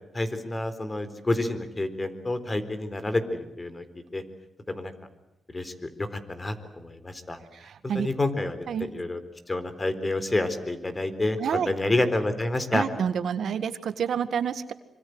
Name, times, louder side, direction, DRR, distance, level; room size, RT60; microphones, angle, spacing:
voice 1, 0.1-3.8 4.1-4.2 4.7-4.9 5.5-7.4 7.8-9.2 9.5-12.8, left 2 dB, 25° left, 11 dB, 4.1 m, -29 dB
voice 2, 7.6-8.1 8.7-8.9 11.4-11.7 12.7-14.7, right 7 dB, 75° right, 12 dB, 1.7 m, -28 dB
25.5 x 25.0 x 8.0 m, 0.91 s
cardioid pair, 80°, 0 cm